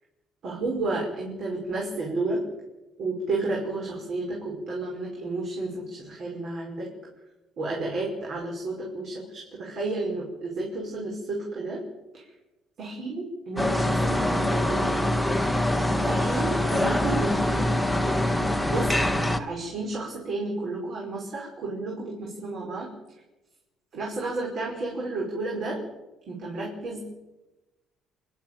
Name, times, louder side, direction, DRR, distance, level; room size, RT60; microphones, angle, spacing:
voice 1, 0.4-2.4 3.0-6.9 7.6-11.8 12.1-12.2 12.8-14.9 16.0-17.7 18.6-22.9 23.9-25.8 26.3-27.0, right 2 dB, 50° right, -2 dB, 5.4 m, -32 dB
sound 1, 13.6-19.4, left 1 dB, ahead, 1.4 m, -24 dB
28.5 x 11.5 x 9.1 m, 1.1 s
cardioid pair, 150°, 0 cm